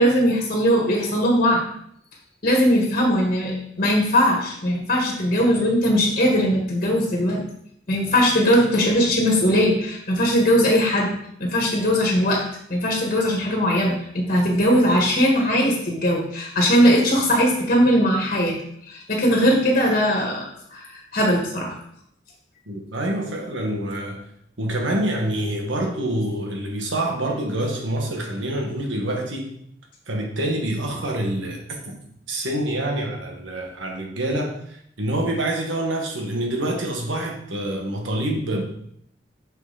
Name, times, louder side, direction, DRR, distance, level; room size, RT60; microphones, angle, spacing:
voice 1, 0.0-1.6 2.4-7.4 7.9-11.1 11.4-12.4 12.7-18.6 18.9-20.5 20.7-21.7, equal, 45° left, -1 dB, 1.7 m, -20 dB
voice 2, 22.7-24.2 24.6-29.5 30.1-32.0 32.3-38.6, right 1 dB, 85° right, 1 dB, 1.5 m, -26 dB
6.2 x 5.7 x 4.1 m, 0.70 s
head